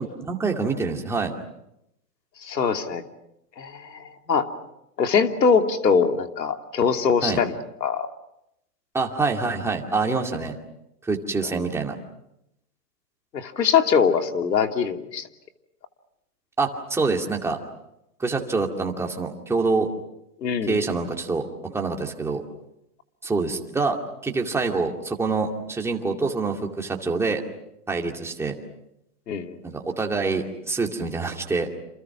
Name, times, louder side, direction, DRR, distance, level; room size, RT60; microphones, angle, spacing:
voice 1, 0.0-1.3 7.2-7.4 8.9-10.6 11.0-11.9 16.6-17.6 18.2-19.9 20.6-22.4 23.2-24.0 24.2-27.4 27.9-28.5 29.6-31.7, right 4 dB, 5° right, 1 dB, 2.4 m, -26 dB
voice 2, 2.4-3.0 3.6-4.5 5.0-7.5 7.8-8.1 13.3-15.3 20.4-20.8 29.3-29.6, left 6 dB, 85° left, 5 dB, 3.0 m, -22 dB
29.0 x 28.0 x 6.1 m, 0.82 s
hypercardioid pair, 150°, 48 cm